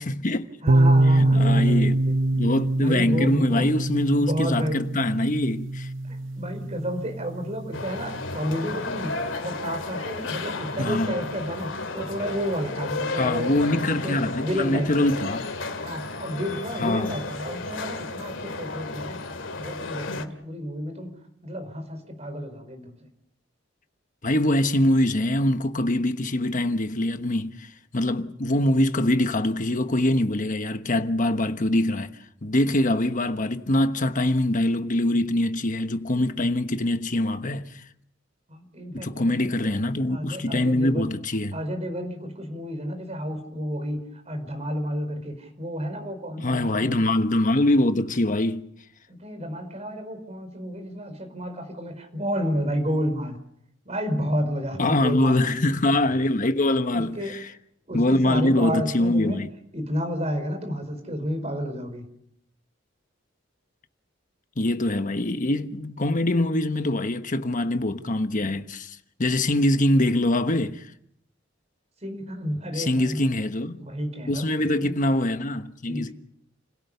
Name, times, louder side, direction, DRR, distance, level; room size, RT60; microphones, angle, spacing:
voice 1, 0.0-0.5 1.2-2.0 2.3-5.9 10.8-11.2 13.1-15.5 16.8-17.2 24.2-27.7 27.9-32.1 32.4-37.7 38.9-41.6 46.4-48.7 54.8-57.5 57.9-59.5 64.6-70.8 72.7-73.8 74.3-76.1, left 1 dB, 45° left, 1.2 m, -24 dB
voice 2, 0.6-2.2 2.8-3.6 4.2-4.8 6.1-14.2 14.4-15.1 15.8-19.2 19.6-21.1 21.4-23.0 38.5-39.8 40.1-41.1 41.5-47.0 49.1-53.4 53.8-55.6 56.9-57.4 57.9-59.4 59.7-62.1 72.0-73.2 73.8-75.0 75.9-76.1, equal, 35° right, 4.9 m, -31 dB
sound 1, 0.7-8.4, right 2 dB, 90° right, 0.8 m, -24 dB
sound 2, 7.7-20.3, left 3 dB, 90° left, 2.3 m, -33 dB
30.0 x 17.0 x 6.9 m
head